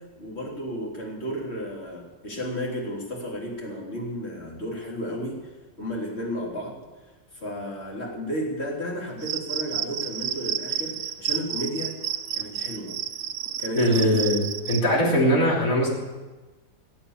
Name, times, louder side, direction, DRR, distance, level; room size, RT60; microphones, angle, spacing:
voice 1, 0.2-5.4 5.8-6.8 7.3-11.9 12.3-12.9 13.6-14.2, equal, 45° left, -2 dB, 3.7 m, -33 dB
Cricket, 9.2-14.8, right 10 dB, 85° right, 1.2 m, -31 dB
voice 2, 13.7-15.9, equal, 70° left, -3 dB, 3.7 m, -21 dB
17.5 x 8.8 x 8.2 m, 1.2 s
omnidirectional pair, 1.5 m